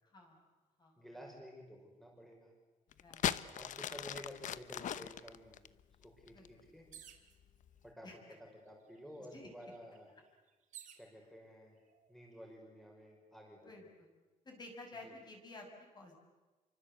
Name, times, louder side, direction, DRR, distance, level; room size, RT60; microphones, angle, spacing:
voice 1, 0.0-0.4 0.8-1.0 3.0-3.3 6.3-6.5 8.0-8.2 9.3-9.5 13.6-14.1 14.4-16.1, left 2 dB, 30° left, 2 dB, 6.4 m, -52 dB
voice 2, 1.0-2.5 3.5-5.6 6.0-6.9 7.8-8.1 8.4-10.1 11.0-11.8 12.1-13.8 15.0-15.2, equal, ahead, -1 dB, 5.6 m, -53 dB
sound 1, 2.9-6.6 7.4-7.8, left 10 dB, 60° left, 1.0 m, -38 dB
sound 2, 6.9-7.4 8.3-8.4 8.7-11.1 11.9-12.4, right 9 dB, 60° right, 3.1 m, -56 dB
29.5 x 24.5 x 8.2 m, 1.2 s
cardioid pair, 165°, 15 cm